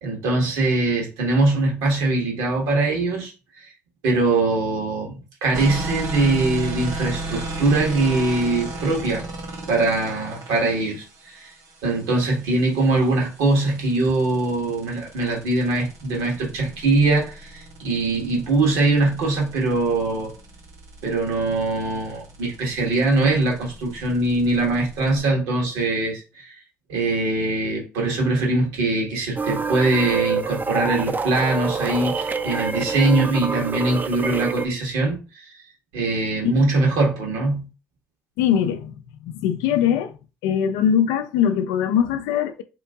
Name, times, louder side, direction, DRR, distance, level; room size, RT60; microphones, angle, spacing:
voice 1, 0.0-3.7 4.0-9.3 9.7-11.5 11.8-20.3 21.0-26.5 26.9-35.5 35.9-37.7, right 2 dB, 80° right, 1.4 m, -22 dB
sound 1, 5.5-25.2, right 2 dB, 65° right, 1.4 m, -35 dB
sound 2, 29.4-34.7, right 4 dB, 30° right, 0.4 m, -27 dB
voice 2, 38.4-40.1 40.4-42.6, left 9 dB, 80° left, 0.4 m, -21 dB
3.0 x 2.6 x 3.6 m
supercardioid pair, 60°, 6 cm